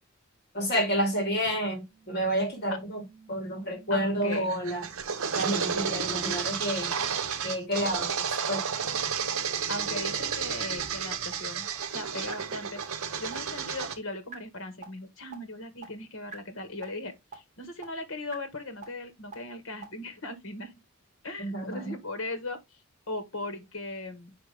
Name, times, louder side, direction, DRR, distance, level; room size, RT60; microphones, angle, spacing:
voice 1, 0.5-3.0 3.3-4.8 5.3-7.0 7.4-8.7 21.4-21.9, equal, 50° left, 2.5 m, -30 dB
sound 1, 1.9-4.3 4.8-4.9 5.3-5.4 5.8-5.9 6.3-6.4 6.8-6.9 7.3-7.4 7.8-7.9 8.3-8.4 8.8-8.9 9.3-9.4 9.8-9.9 10.3-10.4 10.8-10.9 11.3-11.4 11.8-11.9 12.3-12.4 12.8-12.9 13.3-13.4 13.8-13.9 14.3-14.4 14.8-14.9 15.3-15.4 15.8-15.9 16.3-16.4 16.8-16.9 17.3-17.4 17.8-17.9 18.3-18.4 18.8-18.9 19.3-19.4 19.8-19.9, right 6 dB, 35° right, 2.7 m, -44 dB
voice 2, 3.9-4.5 9.7-12.8 13.2-20.7 21.2-22.8 23.1-24.4, left 2 dB, 65° left, 1.5 m, -38 dB
sound 2, 4.3-14.0, right 7 dB, 80° right, 0.8 m, -32 dB
5.9 x 4.9 x 3.4 m
head